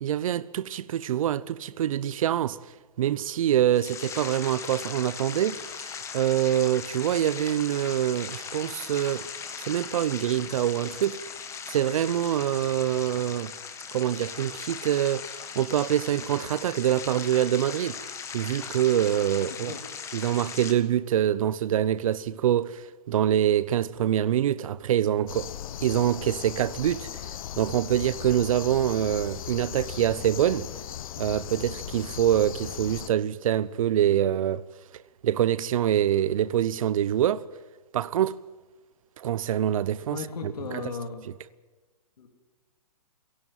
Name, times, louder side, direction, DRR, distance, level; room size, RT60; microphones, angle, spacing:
voice 1, 0.0-2.6 3.0-9.3 9.6-11.2 11.7-13.5 13.9-18.0 18.3-19.8 20.1-25.5 25.8-27.3 27.6-30.7 31.2-34.6 35.2-37.5 37.9-38.4 39.2-40.9 41.3-41.4, right 11 dB, 60° right, 0.8 m, -25 dB
sound 1, 3.7-20.7, left 6 dB, 15° left, 1.5 m, -39 dB
sound 2, 25.3-33.1, left 11 dB, 60° left, 0.7 m, -38 dB
voice 2, 40.1-41.2 42.2-42.3, left 5 dB, 75° left, 3.2 m, -35 dB
28.5 x 11.5 x 9.1 m
hypercardioid pair, 145°, 20 cm